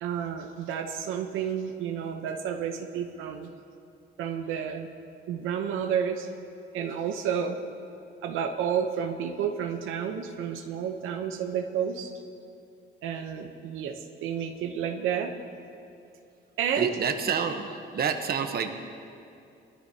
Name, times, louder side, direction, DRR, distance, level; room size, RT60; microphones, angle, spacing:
voice 1, 0.0-3.5 4.2-4.9 5.3-6.3 6.7-7.6 8.2-12.1 13.0-15.3 16.6-17.0, right 8 dB, 90° right, 4 dB, 0.8 m, -30 dB
voice 2, 16.7-18.7, right 6 dB, 50° right, 6 dB, 1.0 m, -28 dB
20.5 x 13.5 x 2.8 m, 2.5 s
cardioid pair, 90°, 20 cm